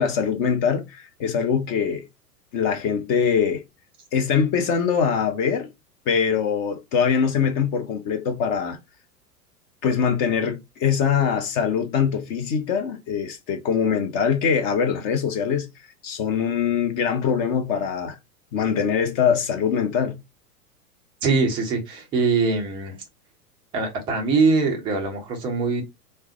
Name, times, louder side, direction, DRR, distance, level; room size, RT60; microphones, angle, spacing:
voice 1, 0.0-2.1 2.5-3.6 4.1-5.7 6.1-8.8 9.8-15.7 16.0-18.2 18.5-20.2, left 7 dB, 30° left, 0.6 m, -23 dB
voice 2, 21.2-23.0 23.7-25.8, right 4 dB, 10° right, 0.3 m, -22 dB
3.2 x 2.1 x 2.8 m
figure-of-eight pair, 95°, 46 cm